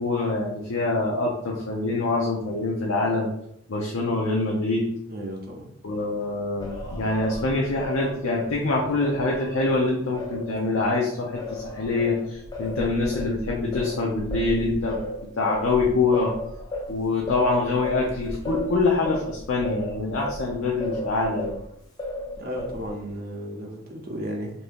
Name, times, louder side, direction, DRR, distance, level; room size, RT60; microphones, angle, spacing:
voice 1, 0.0-3.3 3.7-4.9 5.8-16.3 16.9-21.6, left 3 dB, 70° left, -2 dB, 0.5 m, -25 dB
voice 2, 5.1-5.7 22.4-24.5, equal, 45° right, 0 dB, 0.6 m, -34 dB
Singing, 6.6-11.0 11.4-21.7 22.0-23.0, left 1 dB, 20° left, 0.4 m, -35 dB
2.7 x 2.6 x 3.4 m, 0.75 s
head